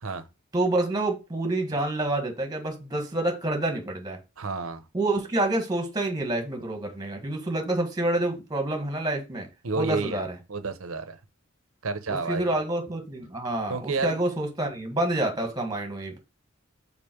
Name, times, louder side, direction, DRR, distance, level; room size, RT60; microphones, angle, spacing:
voice 1, 0.5-4.2 4.9-9.5 9.7-10.3 12.1-16.2, right 2 dB, 20° right, 1.4 m, -28 dB
voice 2, 4.4-4.8 9.6-10.2 10.5-11.2 11.8-12.5 13.7-14.2, right 4 dB, 90° right, 0.9 m, -30 dB
5.4 x 4.1 x 4.4 m
head